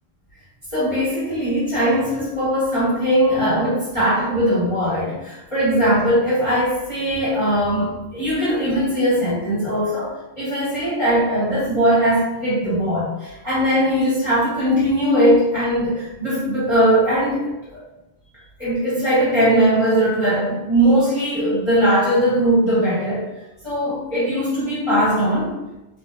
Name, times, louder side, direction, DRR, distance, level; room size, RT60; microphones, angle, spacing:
voice 1, 0.7-17.8 18.6-23.3 23.6-25.6, equal, 30° left, -11 dB, 0.7 m, -20 dB
2.8 x 2.0 x 2.2 m, 0.99 s
omnidirectional pair, 1.1 m